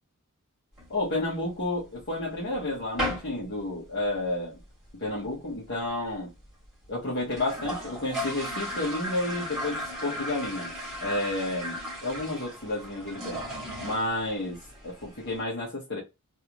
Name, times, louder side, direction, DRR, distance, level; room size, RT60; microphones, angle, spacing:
sound 1, 0.8-1.8 2.2-2.3 2.5-2.7 3.0-3.4 3.7-3.8 4.1-4.2 4.4-4.9 5.3-5.4 5.5-5.6 5.9-6.0 6.5-6.6 6.8-6.9 7.2-15.4, equal, 5° right, 2.0 m, -36 dB
voice 1, 0.9-4.6 5.0-6.3 6.9-10.7 11.0-13.4 13.8-16.0, left 2 dB, 55° left, 1.2 m, -31 dB
3.2 x 2.7 x 3.0 m
head